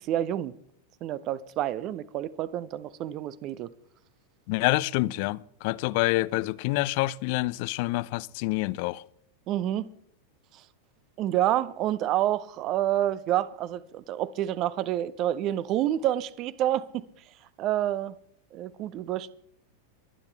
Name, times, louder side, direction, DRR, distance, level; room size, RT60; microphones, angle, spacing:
voice 1, 0.1-0.5 1.0-3.7 9.5-9.9 11.2-17.1 17.6-18.1 18.5-19.3, right 12 dB, 35° right, 0.7 m, -28 dB
voice 2, 4.5-9.0, left 20 dB, 45° left, 0.5 m, -27 dB
23.5 x 9.9 x 3.4 m
figure-of-eight pair, 90°, 0 cm